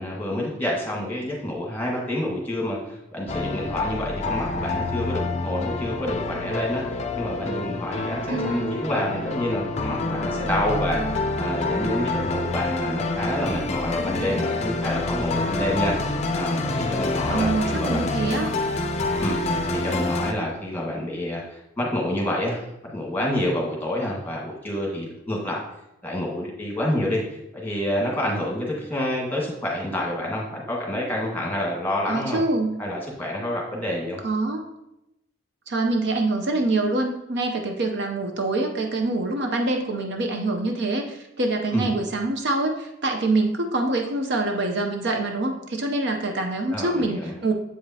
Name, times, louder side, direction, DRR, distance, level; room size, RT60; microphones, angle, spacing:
voice 1, 0.0-18.3 19.2-22.6 22.9-25.6 26.0-27.2 27.5-32.4 32.8-34.2 41.7-41.9 46.7-47.3, left 1 dB, 10° left, -3 dB, 1.4 m, -28 dB
sound 1, 3.3-20.3, left 2 dB, 30° left, 0.5 m, -27 dB
voice 2, 8.3-8.8 17.3-18.5 32.1-32.8 34.2-34.6 35.7-47.5, right 2 dB, 55° right, 4 dB, 0.6 m, -25 dB
7.8 x 4.9 x 2.7 m, 0.88 s
head